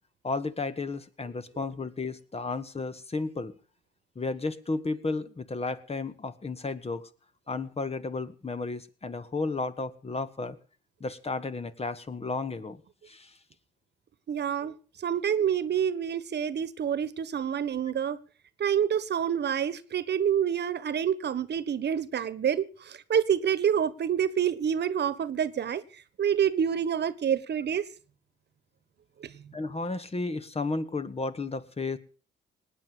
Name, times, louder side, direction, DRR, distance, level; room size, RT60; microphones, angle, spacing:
voice 1, 0.2-3.5 4.2-7.1 7.5-10.6 11.0-12.8 13.1-13.3 29.5-32.0, left 3 dB, 30° left, 11 dB, 1.9 m, -33 dB
voice 2, 14.3-18.2 18.6-25.8 26.2-27.9 29.2-29.3, right 8 dB, 60° right, 16 dB, 1.4 m, -27 dB
19.0 x 9.6 x 6.9 m, 0.40 s
supercardioid pair, 60°, 20 cm